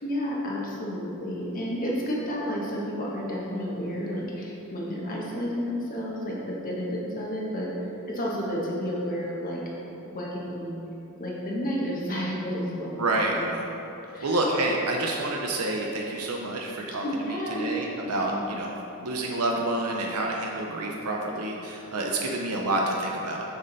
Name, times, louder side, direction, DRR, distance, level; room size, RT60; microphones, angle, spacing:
voice 1, 0.0-9.6 10.1-10.8 11.2-13.0 13.3-13.4 14.1-14.4 17.0-17.8 18.2-18.6, equal, 40° left, -4 dB, 1.2 m, -31 dB
voice 2, 13.0-13.6 14.1-17.0 17.6-18.7 19.0-23.4, right 2 dB, 85° right, -1 dB, 0.7 m, -28 dB
6.8 x 6.6 x 4.0 m, 2.9 s
head